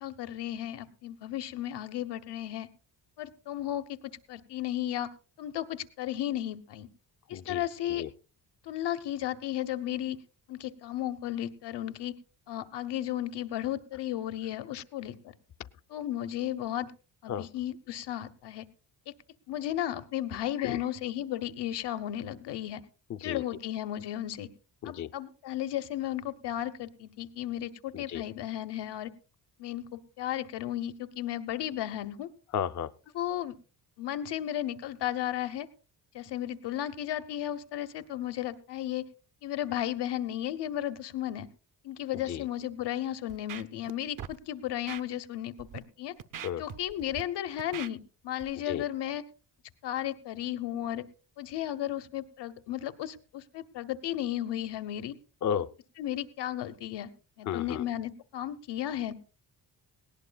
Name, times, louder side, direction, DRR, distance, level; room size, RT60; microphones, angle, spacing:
voice 1, 0.0-2.7 3.2-4.0 4.3-5.1 5.4-6.9 7.3-8.0 8.6-10.2 10.5-12.1 12.5-15.3 15.9-16.9 17.2-18.6 19.1-19.2 19.5-22.8 23.2-24.5 24.8-29.1 29.6-32.3 33.1-33.5 34.0-35.7 36.1-39.1 39.4-41.5 41.8-46.1 46.6-48.0 48.2-49.2 49.8-51.0 51.4-55.1 56.0-57.1 57.4-59.1, left 12 dB, 90° left, 9 dB, 1.0 m, -34 dB
voice 2, 7.3-7.6 8.0-8.1 14.7-14.8 17.3-17.5 20.6-20.8 23.1-23.4 24.8-25.1 27.9-28.2 32.5-32.9 42.1-42.5 46.4-46.6 48.6-48.8 55.4-55.7 57.5-57.8, left 8 dB, 45° left, 16 dB, 0.6 m, -33 dB
Scratching (performance technique), 43.3-43.9 44.2-44.4 44.9-45.0 45.6-45.8 46.2-47.2 47.6-47.9 48.4-48.5, right 9 dB, 55° right, 0.7 m, -41 dB
18.5 x 17.5 x 2.3 m, 0.34 s
cardioid pair, 110°, 40 cm